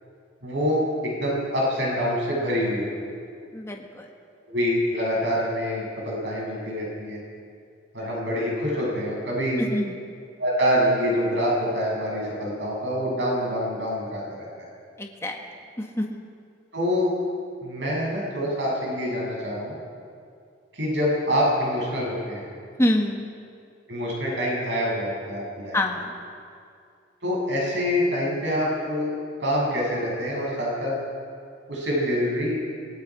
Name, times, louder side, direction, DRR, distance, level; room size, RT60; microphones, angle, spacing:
voice 1, 0.4-3.1 4.5-7.2 7.9-9.6 10.4-14.7 16.7-17.1 17.6-19.8 20.7-22.5 23.9-25.8 27.2-29.1 29.4-30.9 31.7-32.6, equal, 75° right, -4 dB, 7.8 m, -26 dB
voice 2, 3.5-4.1 9.6-10.0 15.0-15.4 15.8-16.2 22.8-23.3 25.7-26.1, left 1 dB, 15° left, 2 dB, 1.6 m, -26 dB
27.0 x 22.0 x 5.0 m, 2.3 s
head